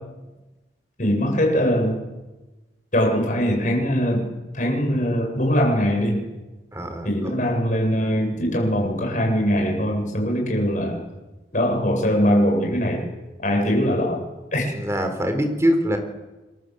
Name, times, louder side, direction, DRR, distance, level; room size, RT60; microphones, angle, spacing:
voice 1, 1.0-1.9 2.9-4.2 4.5-6.2 7.0-11.0 11.5-13.1 13.4-14.2 14.5-14.7, equal, 45° left, 2 dB, 7.9 m, -21 dB
voice 2, 6.7-7.3 14.7-16.0, equal, 15° right, 6 dB, 3.9 m, -23 dB
29.5 x 23.5 x 8.1 m, 1.1 s
head